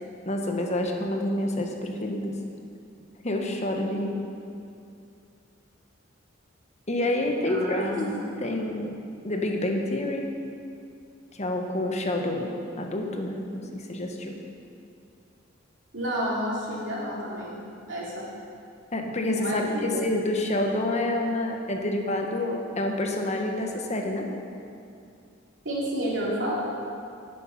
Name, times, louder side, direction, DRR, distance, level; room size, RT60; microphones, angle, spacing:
voice 1, 0.3-2.3 3.2-4.2 6.9-9.0 9.2-10.3 11.3-12.5 12.8-14.4 18.9-24.3, left 1 dB, 35° left, 2 dB, 1.0 m, -28 dB
voice 2, 7.4-8.1 15.9-17.6 17.9-18.3 19.3-20.1 25.6-26.6, equal, 70° right, -5 dB, 3.0 m, -30 dB
9.9 x 9.8 x 5.8 m, 2.5 s
head